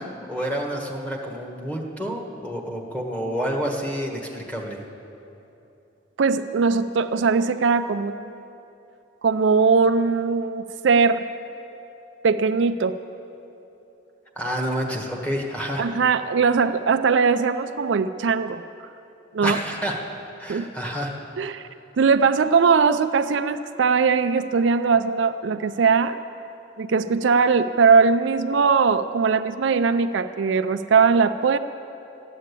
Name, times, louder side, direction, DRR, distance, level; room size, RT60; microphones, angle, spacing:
voice 1, 0.0-4.8 14.3-15.9 19.4-20.0 20.4-21.1, equal, 5° left, 0 dB, 1.4 m, -29 dB
voice 2, 6.2-8.3 9.2-11.3 12.2-13.0 15.8-18.6 19.3-19.6 20.5-20.7 21.4-21.6 22.0-26.2 26.8-31.6, right 5 dB, 65° right, 9 dB, 0.4 m, -20 dB
13.0 x 10.0 x 8.3 m, 2.9 s
head